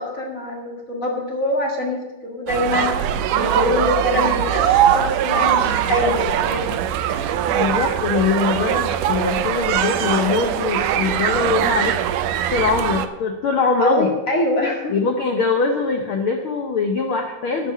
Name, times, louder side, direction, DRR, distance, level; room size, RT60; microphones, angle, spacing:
voice 1, 0.0-2.9 3.3-6.7 13.8-15.0, left 1 dB, 30° left, -1 dB, 2.1 m, -24 dB
sound 1, 2.5-13.1, right 10 dB, 80° right, 2.1 m, -21 dB
voice 2, 7.5-11.9 12.5-14.1 14.9-17.7, left 4 dB, 80° left, 4 dB, 1.1 m, -22 dB
12.0 x 5.6 x 8.5 m, 1.1 s
omnidirectional pair, 3.7 m